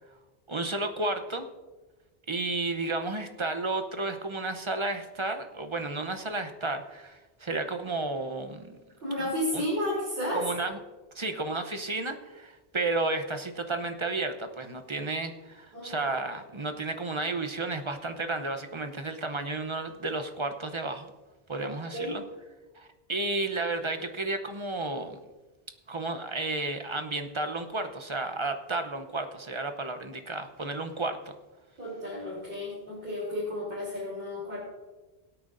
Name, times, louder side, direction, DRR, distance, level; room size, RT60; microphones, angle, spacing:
voice 1, 0.5-1.5 2.3-8.8 9.2-9.6 10.3-10.8 11.1-21.1 21.5-22.2 22.7-25.2 25.9-31.3, right 2 dB, 30° right, 7 dB, 0.8 m, -32 dB
voice 2, 9.0-10.4 15.7-16.1 21.6-22.2 31.8-34.6, left 1 dB, 55° right, -7 dB, 3.6 m, -32 dB
22.5 x 8.8 x 2.6 m, 1.2 s
omnidirectional pair, 1.1 m